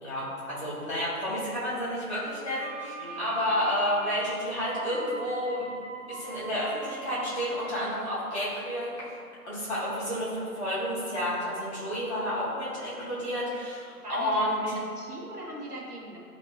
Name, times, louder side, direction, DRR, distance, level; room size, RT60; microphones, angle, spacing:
voice 1, 0.0-5.7 6.1-8.9 9.4-10.3 10.5-14.6, equal, 20° left, -10 dB, 1.4 m, -30 dB
sound 1, 2.5-8.1, right 4 dB, 55° right, 0.7 m, -41 dB
voice 2, 14.0-16.2, right 1 dB, 75° right, -3 dB, 1.2 m, -40 dB
8.1 x 2.8 x 2.3 m, 2.3 s
figure-of-eight pair, 165°, 46 cm